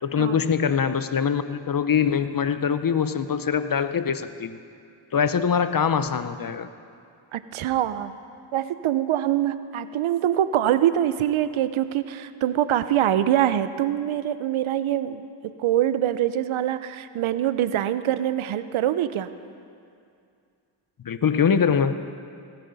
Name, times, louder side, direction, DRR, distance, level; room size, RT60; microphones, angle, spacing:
voice 1, 0.0-4.6 5.1-6.7 21.0-21.9, left 7 dB, 45° left, 11 dB, 0.7 m, -23 dB
voice 2, 7.3-8.2 8.5-19.3, right 11 dB, 85° right, 13 dB, 0.6 m, -24 dB
19.5 x 9.1 x 4.0 m, 2.4 s
cardioid pair, 40°, 48 cm